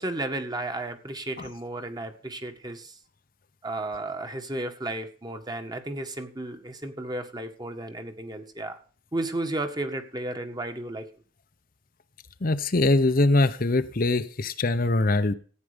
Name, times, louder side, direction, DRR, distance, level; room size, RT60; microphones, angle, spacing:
voice 1, 0.0-2.9 3.6-8.8 9.1-11.1, right 2 dB, 25° right, 1.8 m, -33 dB
voice 2, 12.4-15.3, left 2 dB, 55° left, 0.9 m, -22 dB
14.5 x 9.3 x 5.2 m
head